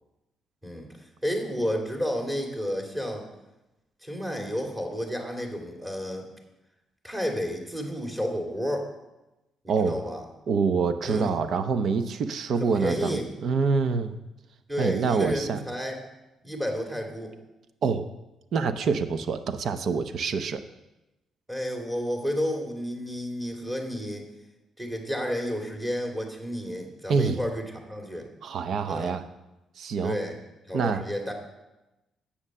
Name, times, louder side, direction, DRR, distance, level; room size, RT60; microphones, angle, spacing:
voice 1, 1.2-3.3 4.0-6.3 7.0-8.9 9.8-10.2 11.0-11.3 12.5-13.3 14.7-16.1 16.4-17.3 21.5-24.2 24.8-28.3 28.8-29.2 30.0-30.4 30.7-31.3, equal, 15° right, 2 dB, 2.8 m, -31 dB
voice 2, 10.5-14.1 14.8-15.6 17.8-18.1 18.5-20.6 27.1-27.4 28.4-29.2 29.8-30.2 30.7-31.0, right 5 dB, 65° right, 10 dB, 0.7 m, -26 dB
9.8 x 8.7 x 6.6 m, 0.98 s
cardioid pair, 90°, 0 cm